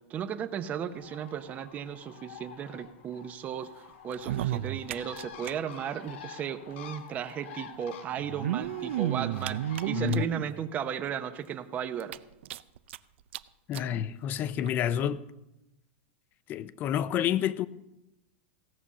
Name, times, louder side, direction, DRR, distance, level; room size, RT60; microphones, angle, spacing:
voice 1, 0.1-12.2, right 8 dB, 25° right, 0.7 m, -35 dB
Bird, 0.9-10.1, left 8 dB, 70° left, 1.7 m, -48 dB
sound 1, 4.1-5.5 5.8-5.9 6.1-6.2 7.2-7.3 8.2-10.5 11.1-11.2 11.5-11.6 12.0-13.0 13.3-13.4 13.7-13.9 14.7-14.8, right 12 dB, 75° right, 0.5 m, -32 dB
voice 2, 9.9-10.2 13.7-15.3 16.5-17.7, left 10 dB, 30° left, 0.6 m, -29 dB
16.5 x 6.9 x 7.4 m
supercardioid pair, 155°, 7 cm